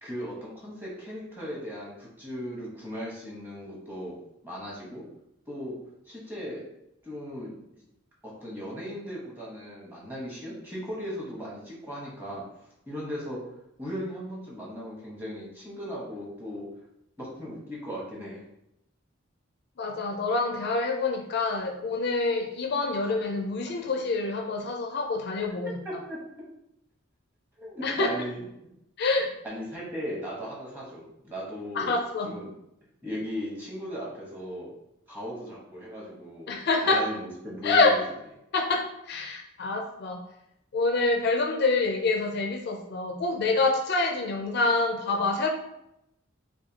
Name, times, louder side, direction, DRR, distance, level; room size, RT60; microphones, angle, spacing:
voice 1, 0.0-4.2 4.4-5.0 5.5-5.8 6.1-6.6 7.0-7.5 8.2-12.4 12.9-13.4 13.8-16.7 17.2-18.4 25.6-26.2 27.6-28.7 29.4-31.9 32.2-32.5 33.0-34.7 35.1-36.5 36.8-38.0, equal, 10° right, -5 dB, 1.0 m, -37 dB
voice 2, 19.8-25.7 27.8-28.1 29.0-29.3 31.8-32.3 36.5-37.0 37.6-37.9 38.5-40.2 40.7-45.5, left 3 dB, 55° left, 3 dB, 0.4 m, -26 dB
4.9 x 2.3 x 2.8 m, 0.83 s
head